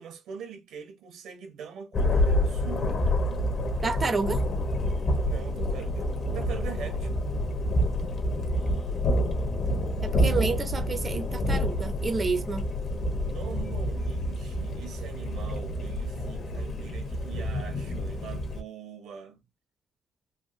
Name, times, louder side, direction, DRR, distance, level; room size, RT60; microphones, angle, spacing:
voice 1, 0.0-3.0 5.2-7.2 13.2-19.4, right 7 dB, 85° right, 1.1 m, -42 dB
Thunder, 1.9-18.6, left 1 dB, 55° left, 1.0 m, -28 dB
voice 2, 3.8-4.4 10.0-12.6, right 4 dB, 30° right, 0.5 m, -29 dB
3.5 x 2.5 x 2.6 m
cardioid pair, 90°, 0 cm